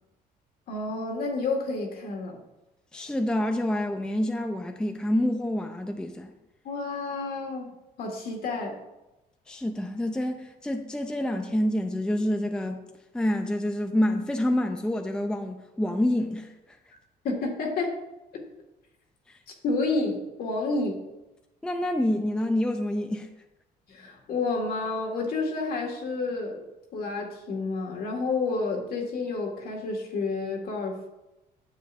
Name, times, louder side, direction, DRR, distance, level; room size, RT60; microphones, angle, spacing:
voice 1, 0.7-2.4 6.7-7.7 8.0-8.8 17.2-17.9 19.6-21.0 23.9-26.6 26.9-31.1, left 3 dB, 65° left, 0 dB, 1.8 m, -30 dB
voice 2, 2.9-6.3 9.5-12.8 13.1-16.5 19.3-19.4 21.6-23.3, left 1 dB, 5° left, 5 dB, 0.5 m, -27 dB
9.5 x 7.3 x 2.5 m, 0.99 s
cardioid pair, 110°, 17 cm